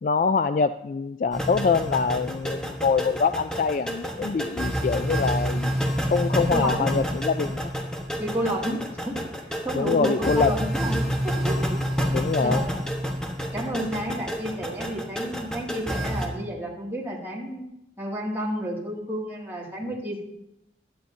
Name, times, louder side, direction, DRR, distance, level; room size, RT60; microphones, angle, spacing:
voice 1, 0.0-5.7 6.1-7.7 9.7-10.7 12.1-12.7, left 5 dB, 45° left, 10 dB, 0.3 m, -24 dB
sound 1, 1.3-16.3, equal, 5° left, 1.3 m, -28 dB
voice 2, 6.5-6.9 8.2-9.2 9.6-11.0 11.2-11.8 12.4-12.9 13.5-17.6 18.0-20.2, equal, 15° right, -4 dB, 2.4 m, -30 dB
16.5 x 11.5 x 2.8 m, 0.82 s
head